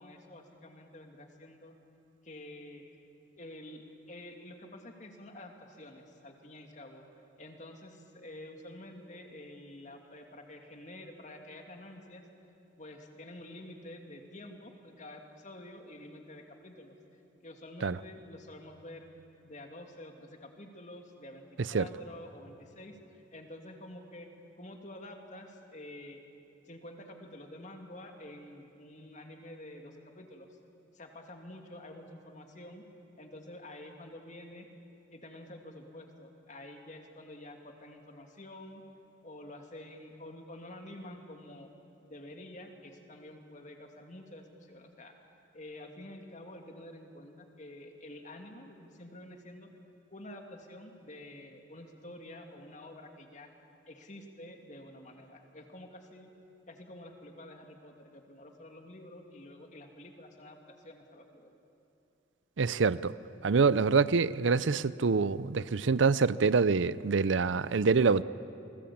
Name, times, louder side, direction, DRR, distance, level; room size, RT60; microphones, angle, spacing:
voice 1, 0.0-1.8 2.2-2.8 3.4-7.0 7.4-12.2 12.8-17.0 17.4-19.1 19.4-24.3 24.6-26.2 26.7-30.6 30.9-32.8 33.2-34.7 35.1-38.8 39.2-41.7 42.0-45.1 45.5-49.7 50.1-53.5 53.9-56.3 56.7-61.5, left 1 dB, 40° left, 3 dB, 2.6 m, -48 dB
voice 2, 62.6-63.1 63.4-68.2, right 4 dB, 80° right, 17 dB, 0.6 m, -25 dB
28.0 x 20.0 x 8.6 m, 2.8 s
head